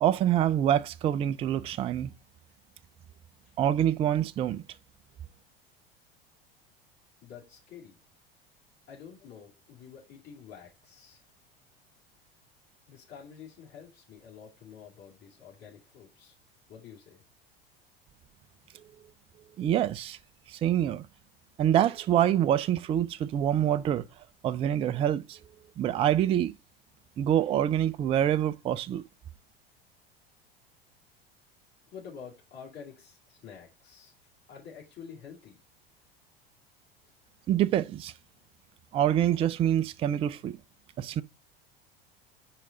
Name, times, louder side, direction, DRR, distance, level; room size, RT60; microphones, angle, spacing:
voice 1, 0.0-2.1 3.6-4.6 19.6-20.2 20.5-21.1 21.6-24.0 24.4-25.4 25.8-26.5 27.2-29.0 37.5-38.1 38.9-40.6 41.0-41.2, right 11 dB, 20° right, 0.4 m, -26 dB
voice 2, 7.2-8.0 8.9-11.2 12.9-16.3 16.7-17.2 31.9-34.1 34.5-35.6 37.0-37.1, left 7 dB, 35° left, 2.4 m, -48 dB
5.8 x 4.7 x 3.8 m
figure-of-eight pair, 75°, 30 cm